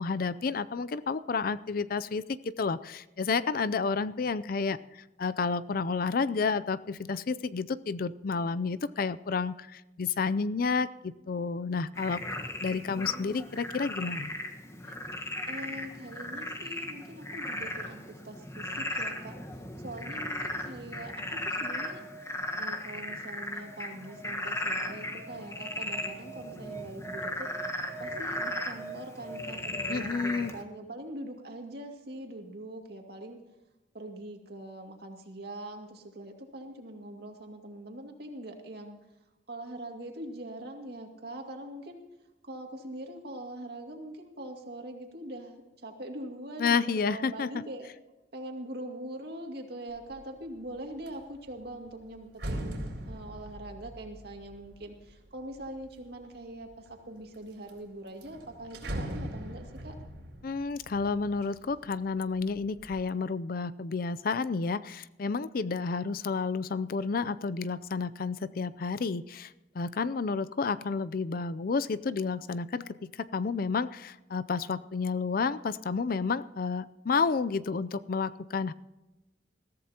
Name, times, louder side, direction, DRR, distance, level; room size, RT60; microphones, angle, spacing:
voice 1, 0.0-12.2 12.6-14.3 29.9-30.5 46.6-47.6 60.4-78.7, left 4 dB, 55° left, 15 dB, 0.5 m, -31 dB
Frog, 12.0-30.6, left 1 dB, 15° left, 1.3 m, -37 dB
voice 2, 12.9-13.5 15.2-22.0 22.6-27.5 28.0-33.4 33.9-39.0 39.5-42.0 42.4-47.9 48.3-59.9, right 1 dB, 60° right, 3 dB, 2.3 m, -43 dB
sound 1, 50.0-50.3 50.7-56.1 56.7-57.3 57.7-57.8 58.1-62.0 62.4-63.0, right 1 dB, 80° right, 3.8 m, -41 dB
21.5 x 14.5 x 2.9 m, 1.0 s
head